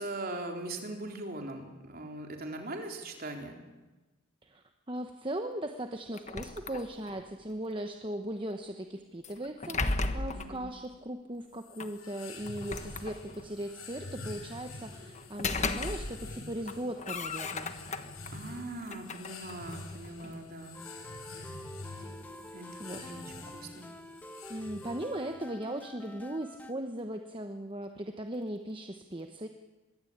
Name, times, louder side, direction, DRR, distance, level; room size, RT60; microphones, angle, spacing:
voice 1, 0.0-3.6 10.3-10.6 18.3-20.8 22.5-23.8, right 2 dB, 40° right, 3 dB, 4.0 m, -40 dB
voice 2, 4.4-17.7 22.4-23.0 24.5-29.5, right 1 dB, 25° right, 5 dB, 1.1 m, -38 dB
sound 1, 6.1-7.3 9.2-10.6 11.8-11.9 12.5-13.6 15.1-16.4 16.7-18.3 18.8-20.4, left 3 dB, 30° left, 1.3 m, -36 dB
sound 2, 11.5-25.3, left 3 dB, 80° left, 6.6 m, -47 dB
sound 3, 20.7-26.7, left 1 dB, 10° left, 1.2 m, -48 dB
25.0 x 21.5 x 8.8 m, 1.2 s
head